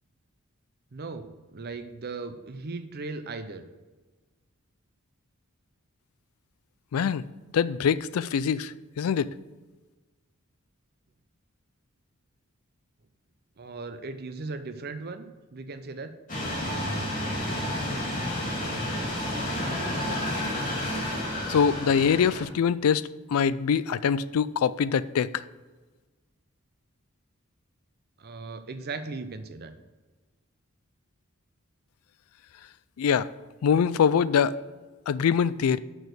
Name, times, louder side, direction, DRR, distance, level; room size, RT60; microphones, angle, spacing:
voice 1, 0.9-1.3 1.5-3.6 13.6-15.3 15.5-16.1 28.2-29.7, right 3 dB, 45° right, 9 dB, 0.7 m, -37 dB
voice 2, 6.9-7.2 7.5-9.3 21.5-25.4 33.0-33.3 33.6-34.5 35.1-35.8, left 7 dB, 80° left, 17 dB, 0.4 m, -24 dB
sound 1, 16.3-22.4, left 1 dB, 40° left, 2.5 m, -30 dB
6.9 x 6.2 x 6.5 m, 1.3 s
head